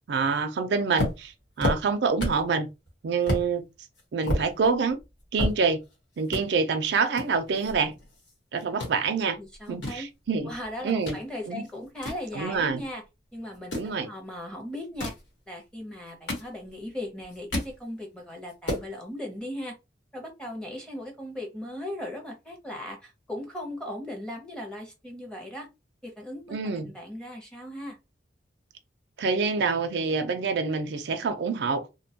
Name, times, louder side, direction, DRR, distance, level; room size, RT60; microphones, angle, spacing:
voice 1, 0.1-2.7 3.0-3.7 4.1-5.0 5.3-5.8 6.2-7.9 8.5-9.4 9.7-10.5 10.8-11.2 11.5-11.6 12.3-12.8 13.7-14.1 26.5-26.9 29.2-31.9, right 5 dB, 70° right, 0.4 m, -26 dB
sound 1, 1.0-2.5 2.9-3.0 3.3-3.5 3.9-5.9 6.2-6.4 7.1-8.3 8.6-9.0 9.5-11.2 11.6-12.9 13.5-13.9 14.8-15.3 15.9-16.9 17.2-17.8 18.2-18.3 18.5-18.9, left 1 dB, 85° left, 1.2 m, -31 dB
voice 2, 9.4-10.1 10.5-13.0 13.3-15.1 15.5-19.7 20.1-25.7 26.0-28.0, left 1 dB, 5° left, 0.6 m, -38 dB
2.6 x 2.2 x 2.7 m
head